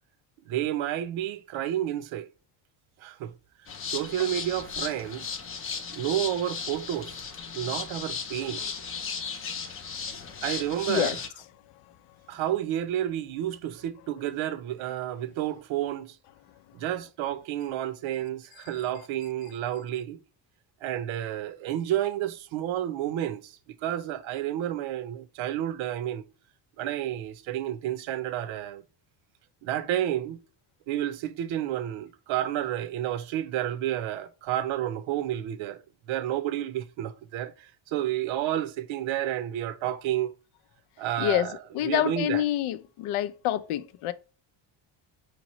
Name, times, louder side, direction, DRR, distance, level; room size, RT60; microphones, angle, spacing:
voice 1, 0.5-2.3 3.0-3.3 3.9-5.3 5.9-7.2 7.5-8.6 10.4-11.2 12.3-16.2 16.7-20.2 20.8-23.5 23.8-26.2 26.8-28.8 29.6-30.4 30.9-35.8 36.1-40.3 41.0-41.6 41.8-42.4, right 12 dB, 70° right, 0.7 m, -30 dB
sound 1, 3.7-11.3, left 6 dB, 30° left, 0.4 m, -36 dB
voice 2, 10.9-11.2 41.2-44.1, left 13 dB, 85° left, 0.6 m, -27 dB
5.0 x 3.0 x 3.0 m
cardioid pair, 165°, 49 cm